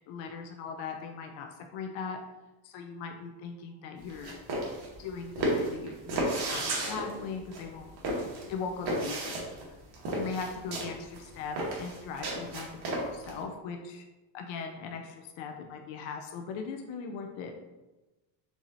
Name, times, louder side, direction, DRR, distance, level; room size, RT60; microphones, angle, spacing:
voice 1, 0.1-2.2 2.6-4.4 5.0-7.9 8.5-9.8 10.1-14.1 14.3-17.5, left 5 dB, 85° left, 4 dB, 0.7 m, -39 dB
sound 1, 4.0-13.3, right 1 dB, 55° right, 1.3 m, -33 dB
4.7 x 3.8 x 2.7 m, 1.1 s
cardioid pair, 115°, 46 cm